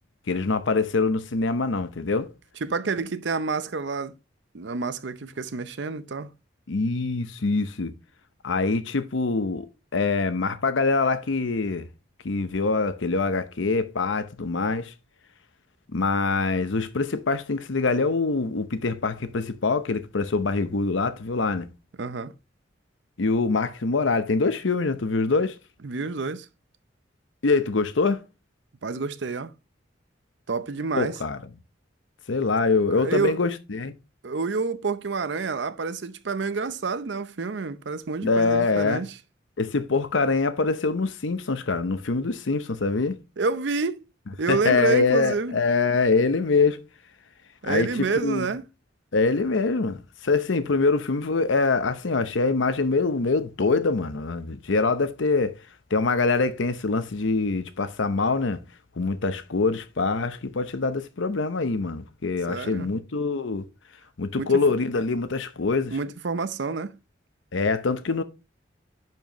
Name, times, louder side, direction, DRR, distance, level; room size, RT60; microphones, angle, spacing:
voice 1, 0.3-2.3 6.7-7.9 8.4-9.7 9.9-11.9 12.2-14.9 15.9-21.7 23.2-25.6 27.4-28.2 30.9-31.4 32.3-33.9 38.2-39.0 39.6-43.2 44.5-46.8 47.6-47.9 48.2-48.5 49.1-55.6 55.9-58.6 59.0-63.7 64.2-65.9 67.5-68.2, left 3 dB, 75° left, 0.8 m, -24 dB
voice 2, 2.6-4.1 4.5-6.3 22.0-22.3 25.8-26.5 28.8-29.5 30.5-31.2 32.9-33.4 34.2-39.2 43.4-44.1 44.4-45.6 47.6-48.6 62.5-62.9 64.4-64.5 65.9-67.0, right 4 dB, 65° right, 0.6 m, -28 dB
10.5 x 4.7 x 3.0 m
head